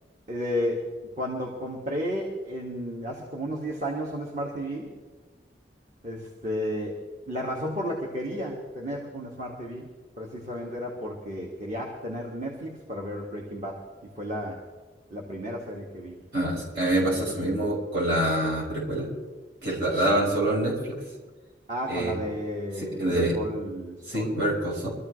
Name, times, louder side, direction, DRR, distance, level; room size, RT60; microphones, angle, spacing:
voice 1, 0.3-0.9 1.2-4.9 6.0-7.0 7.3-9.9 10.2-13.8 14.2-14.6 15.1-16.2 17.0-17.5 21.7-24.3, equal, 40° right, -2 dB, 2.0 m, -33 dB
voice 2, 16.3-19.1 19.6-20.9 21.9-22.2 22.8-23.4 24.1-24.9, right 1 dB, 70° right, -6 dB, 5.9 m, -26 dB
24.5 x 14.0 x 3.3 m, 1.3 s
head